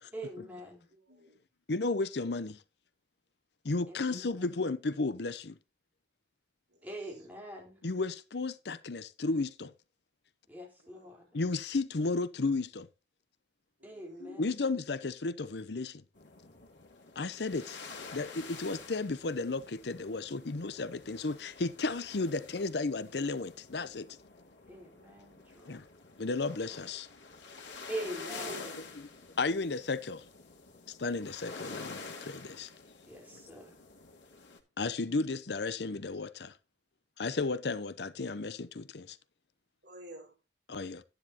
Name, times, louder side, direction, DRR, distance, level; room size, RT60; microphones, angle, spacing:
voice 1, 0.1-0.9 3.9-4.5 6.8-7.8 10.5-11.2 13.8-14.4 24.7-25.8 26.6-26.7 27.9-28.5 33.1-33.7, right 1 dB, 10° right, 3.9 m, -43 dB
voice 2, 0.9-1.4 6.7-7.2 10.8-11.2 13.8-14.4 25.2-25.5 27.9-28.8 33.8-33.9 39.8-40.4, right 1 dB, 70° right, 4.3 m, -50 dB
voice 3, 1.7-2.6 3.6-5.6 7.8-9.7 11.3-12.9 14.2-16.0 17.2-17.8 18.1-24.1 25.7-25.8 26.2-27.1 29.4-30.2 30.9-32.7 34.8-36.5 37.2-39.2 40.7-41.0, left 3 dB, 70° left, 0.7 m, -33 dB
sound 1, 16.1-34.6, left 4 dB, 90° left, 2.3 m, -49 dB
12.0 x 10.0 x 2.9 m
head